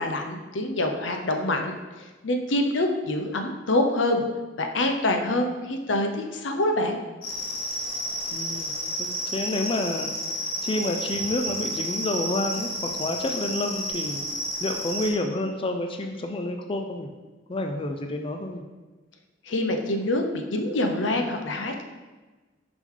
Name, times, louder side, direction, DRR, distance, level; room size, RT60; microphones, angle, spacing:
voice 1, 0.0-4.2 4.6-7.0 19.5-21.8, left 1 dB, 80° left, 4 dB, 0.7 m, -26 dB
sound 1, 7.2-15.1, equal, 55° left, 1.4 m, -31 dB
voice 2, 8.3-8.7 9.0-10.1 10.6-14.2 14.6-17.1 17.5-18.6, left 2 dB, 30° left, 4 dB, 0.4 m, -29 dB
6.2 x 5.2 x 3.8 m, 1.2 s
head